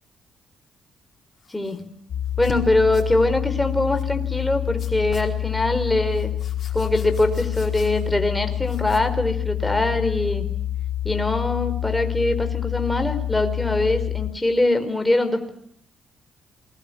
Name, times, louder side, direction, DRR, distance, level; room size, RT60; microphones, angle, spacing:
sound 1, 1.4-1.8 2.2-2.6 2.9-3.1 3.9-4.1 4.8-5.4 6.1-8.2 8.6-9.2, left 5 dB, 50° left, 4.6 m, -42 dB
sound 2, 2.1-14.3, left 12 dB, 70° left, 3.2 m, -27 dB
voice 1, 2.4-6.3 6.7-10.5 11.0-15.5, left 2 dB, 10° left, 7 dB, 4.3 m, -23 dB
28.0 x 21.5 x 8.5 m, 0.65 s
cardioid pair, 90°, 0 cm